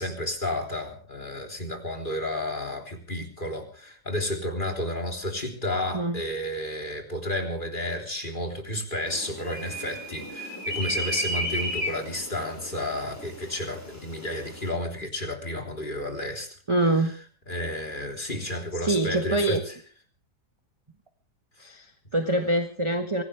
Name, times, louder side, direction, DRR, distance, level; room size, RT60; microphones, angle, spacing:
voice 1, 0.0-16.5 17.5-19.6, left 1 dB, 25° left, 4 dB, 3.8 m, -31 dB
sound 1, 9.1-14.7, equal, 10° left, 4.9 m, -34 dB
voice 2, 16.7-17.1 18.4-19.6 21.6-23.2, right 2 dB, 20° right, 6 dB, 1.3 m, -25 dB
24.5 x 17.0 x 3.4 m, 0.38 s
omnidirectional pair, 1.9 m